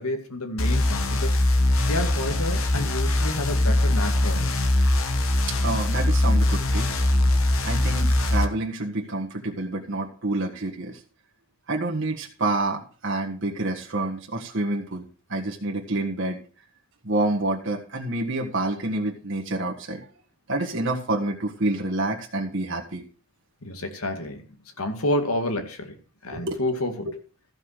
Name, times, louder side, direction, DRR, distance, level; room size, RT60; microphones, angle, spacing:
voice 1, 0.0-1.3 1.9-4.5 23.6-24.4 24.8-25.9 26.2-27.1, left 1 dB, 85° left, 6 dB, 2.1 m, -29 dB
sound 1, 0.6-8.4, left 1 dB, 70° left, 1.3 m, -22 dB
voice 2, 5.6-6.9 7.6-11.0 11.7-15.0 15.3-16.4 17.0-20.0 20.5-23.0 26.3-26.6, right 2 dB, 60° right, 0 dB, 1.6 m, -28 dB
14.5 x 5.4 x 6.5 m, 0.38 s
head